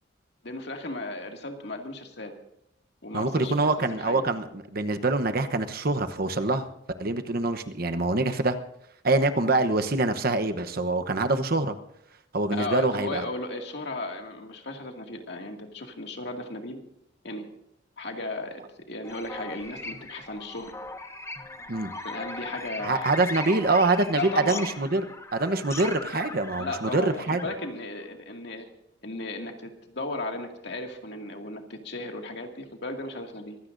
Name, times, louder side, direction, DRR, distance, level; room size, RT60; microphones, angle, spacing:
voice 1, 0.4-2.4 3.0-3.7 4.0-4.3 12.5-16.8 17.2-17.4 18.0-18.6 18.9-20.7 21.9-23.1 24.1-24.7 26.6-28.7 29.0-33.6, left 2 dB, 60° left, 3 dB, 2.2 m, -35 dB
voice 2, 3.1-6.7 7.0-8.6 9.0-11.8 12.3-13.2 21.7-21.9 22.8-25.0 25.3-27.5, right 2 dB, 50° right, 8 dB, 1.0 m, -25 dB
sound 1, 19.0-27.7, left 2 dB, 15° left, 0.9 m, -39 dB
24.0 x 16.5 x 2.6 m, 0.79 s
head